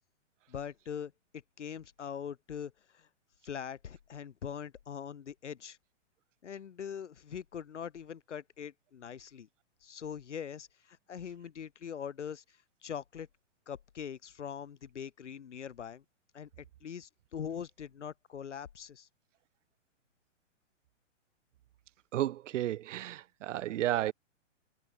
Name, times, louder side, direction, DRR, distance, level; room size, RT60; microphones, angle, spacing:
voice 1, 0.5-1.1 1.6-3.1 3.4-5.8 6.4-9.5 9.8-12.4 12.8-13.3 13.7-16.0 16.3-19.1, left 8 dB, 70° left, 4.6 m, -42 dB
voice 2, 22.1-24.1, right 13 dB, 75° right, 0.5 m, -32 dB
hypercardioid pair, 175°, 37 cm